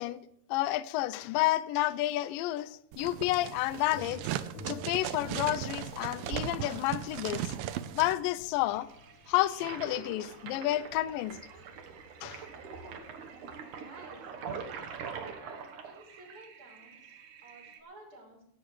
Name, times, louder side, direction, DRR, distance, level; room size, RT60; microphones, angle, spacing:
voice 1, 0.0-4.2 4.7-7.5 8.0-8.9 9.3-11.4 12.2-12.5, left 15 dB, 80° left, 2.0 m, -30 dB
sound 1, 2.9-8.1, right 12 dB, 80° right, 2.3 m, -37 dB
sound 2, 3.7-14.7, left 1 dB, 45° left, 4.9 m, -52 dB
Toilet flush, 8.7-17.8, right 6 dB, 65° right, 2.4 m, -44 dB
voice 2, 13.7-14.9 15.3-18.4, right 2 dB, 35° right, 5.5 m, -53 dB
16.5 x 16.5 x 3.2 m
omnidirectional pair, 4.5 m